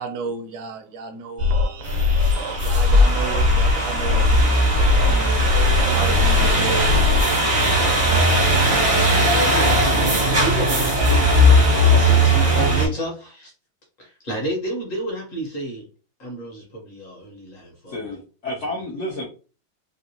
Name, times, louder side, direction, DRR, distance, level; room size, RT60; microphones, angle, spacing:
voice 1, 0.0-1.7 2.6-5.5 5.9-7.1, right 4 dB, 70° right, 0.9 m, -33 dB
sound 1, 1.4-7.4, left 4 dB, 85° right, 1.4 m, -21 dB
sound 2, 1.8-12.9, right 1 dB, 35° right, 0.5 m, -18 dB
voice 2, 9.2-13.5 14.0-15.9 16.2-18.0, right 1 dB, 50° left, 1.3 m, -31 dB
voice 3, 17.9-19.3, left 1 dB, 70° left, 0.7 m, -30 dB
3.5 x 2.5 x 2.8 m
omnidirectional pair, 2.1 m